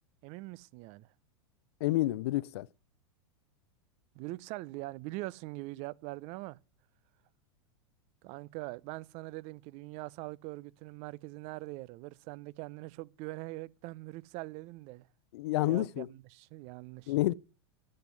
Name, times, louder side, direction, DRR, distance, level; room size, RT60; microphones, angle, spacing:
voice 1, 0.2-1.1 4.1-6.6 8.2-15.1 15.6-17.3, right 20 dB, 50° right, 0.6 m, -43 dB
voice 2, 1.8-2.7 15.3-16.1 17.1-17.3, left 16 dB, 65° left, 0.6 m, -29 dB
10.5 x 7.8 x 9.4 m
hypercardioid pair, 100°, 15 cm